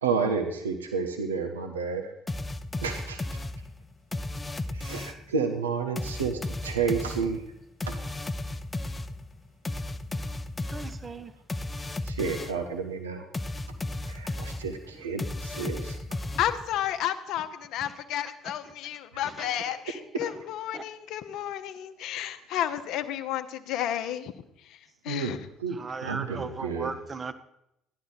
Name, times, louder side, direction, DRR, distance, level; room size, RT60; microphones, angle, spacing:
voice 1, 0.0-2.1 2.8-3.4 4.7-7.4 7.9-8.0 12.0-13.3 14.1-16.0 19.1-20.0 22.2-22.3 25.1-25.3 25.6-26.9, right 5 dB, 85° right, 0.8 m, -31 dB
sound 1, 2.3-5.3 6.0-12.7 13.3-16.8, left 2 dB, 15° left, 0.7 m, -35 dB
voice 2, 10.7-11.3 16.3-16.4 18.4-18.5 19.2-19.6 20.7-20.8 25.7-27.3, right 4 dB, 30° right, 0.8 m, -37 dB
voice 3, 16.4-24.3 25.0-25.4, left 11 dB, 60° left, 0.8 m, -32 dB
13.5 x 11.0 x 4.0 m
figure-of-eight pair, 55°, 0 cm